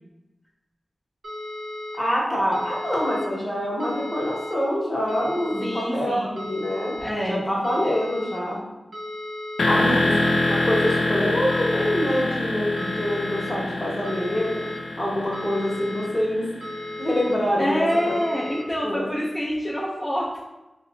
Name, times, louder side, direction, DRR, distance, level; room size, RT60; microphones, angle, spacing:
sound 1, 1.2-2.0 2.5-3.2 3.8-4.5 5.1-5.8 6.4-7.1 7.6-8.4 8.9-9.7 10.2-10.9 11.5-12.2 12.8-13.5 14.0-14.8 15.3-16.1 16.6-17.3 17.9-18.6, left 1 dB, 70° right, 0.7 m, -35 dB
voice 1, 2.0-6.9 7.3-8.6 9.6-14.5 15.0-16.5 17.0-17.9 18.8-19.1, left 1 dB, 20° left, -4 dB, 0.9 m, -25 dB
voice 2, 5.6-6.4 7.0-7.4 9.7-10.4 17.6-20.4, equal, 5° left, -8 dB, 0.5 m, -27 dB
sound 2, 9.6-17.4, left 2 dB, 85° left, 0.3 m, -26 dB
2.8 x 2.1 x 3.8 m, 1.0 s
wide cardioid pair, 110°, 0 cm